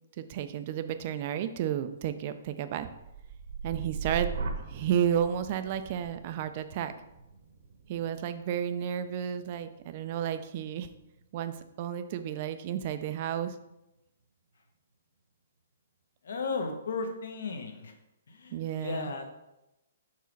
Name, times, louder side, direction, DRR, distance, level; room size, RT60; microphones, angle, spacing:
voice 1, 0.2-2.9 3.6-4.3 4.6-6.9 7.9-10.9 11.3-13.5 18.5-19.1, right 9 dB, 30° right, 10 dB, 0.4 m, -32 dB
sound 1, 2.9-10.8 11.2-11.7, right 5 dB, 45° right, 0.9 m, -41 dB
voice 2, 16.2-17.9 18.3-18.5 18.8-19.3, left 4 dB, 70° left, 5 dB, 1.1 m, -34 dB
6.0 x 4.7 x 4.6 m, 0.92 s
hypercardioid pair, 175°, 0 cm